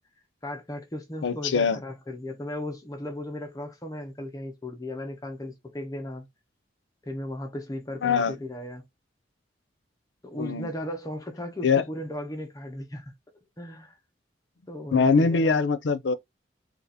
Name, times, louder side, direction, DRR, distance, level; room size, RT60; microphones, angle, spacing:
voice 1, 0.4-6.3 7.1-8.8 10.2-13.1 13.6-14.0 14.7-15.5, left 1 dB, 20° left, 0.7 m, -36 dB
voice 2, 1.2-1.8 8.0-8.4 10.4-10.7 11.6-11.8 14.9-16.1, left 5 dB, 85° left, 0.5 m, -22 dB
2.9 x 2.4 x 4.0 m
head